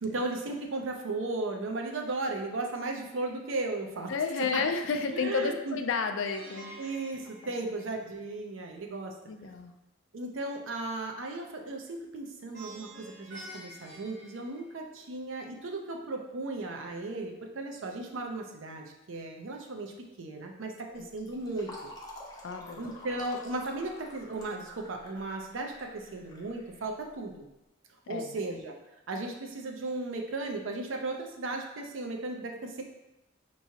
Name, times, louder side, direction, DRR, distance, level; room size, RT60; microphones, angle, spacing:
voice 1, 0.0-4.1 4.5-4.6 5.1-5.8 6.8-7.2 7.5-9.1 10.1-19.9 20.2-21.7 22.8-27.4 28.1-28.7 29.1-32.8, right 2 dB, 75° right, 2 dB, 0.6 m, -36 dB
voice 2, 4.1-6.7 7.6-7.7 9.3-9.7 20.9-21.1 22.4-22.9 28.1-28.4, left 5 dB, 70° left, 7 dB, 0.4 m, -31 dB
Plucked string instrument, 6.2-8.4 12.5-15.1, right 1 dB, 60° right, 1.3 m, -48 dB
Fill (with liquid), 20.9-27.3, left 1 dB, 20° left, 0.6 m, -49 dB
4.7 x 3.0 x 2.8 m, 0.95 s
head